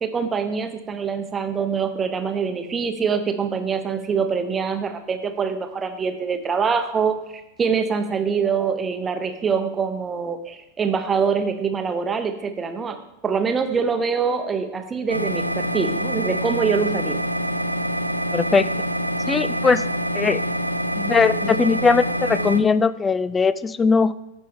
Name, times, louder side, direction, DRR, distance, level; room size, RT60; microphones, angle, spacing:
voice 1, 0.0-7.2 7.6-13.0 13.2-17.2, right 6 dB, 20° right, 8 dB, 0.8 m, -24 dB
sound 1, 15.1-22.6, equal, 85° right, 0.4 m, -25 dB
voice 2, 18.3-18.7 19.3-19.8 20.1-20.4 20.9-24.1, left 4 dB, 15° left, 16 dB, 0.3 m, -19 dB
13.0 x 5.4 x 3.6 m, 0.88 s
figure-of-eight pair, 90°, 0 cm